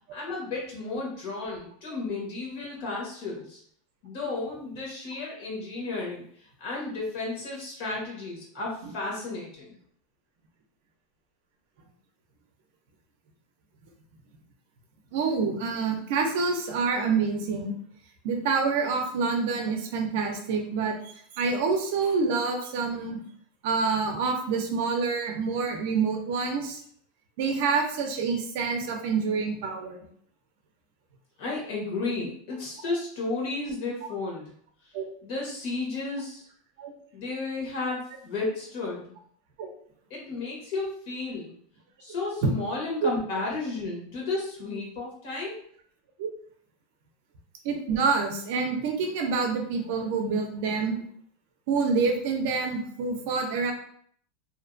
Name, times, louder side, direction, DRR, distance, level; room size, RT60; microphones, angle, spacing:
voice 1, 0.1-3.6 4.0-6.2 6.6-9.7 31.4-34.5 35.2-36.4 37.1-39.2 40.1-41.5 42.0-45.6, left 3 dB, 55° left, -3 dB, 1.1 m, -33 dB
voice 2, 15.1-17.7 18.2-21.0 21.3-23.2 23.6-26.8 27.4-30.0 34.9-35.0 36.8-36.9 39.6-39.7 42.4-42.5 46.2-46.3 47.6-51.0 51.7-53.7, right 4 dB, 55° right, 3 dB, 0.5 m, -27 dB
2.6 x 2.2 x 2.5 m, 0.62 s
supercardioid pair, 170°, 0 cm